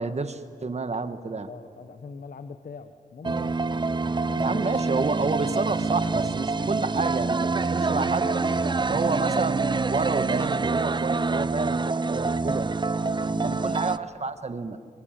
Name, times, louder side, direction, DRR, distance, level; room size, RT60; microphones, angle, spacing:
voice 1, 0.0-1.5 4.4-8.3 8.9-12.7 13.4-14.8, right 4 dB, 50° right, 10 dB, 1.6 m, -29 dB
voice 2, 1.5-3.6 4.2-4.8 7.9-8.9 13.0-13.9, left 5 dB, 70° left, 9 dB, 1.1 m, -41 dB
Intro - electronic loop, 3.2-14.0, right 4 dB, 30° right, 0.6 m, -26 dB
26.5 x 24.0 x 9.0 m, 2.3 s
cardioid pair, 70°, 15 cm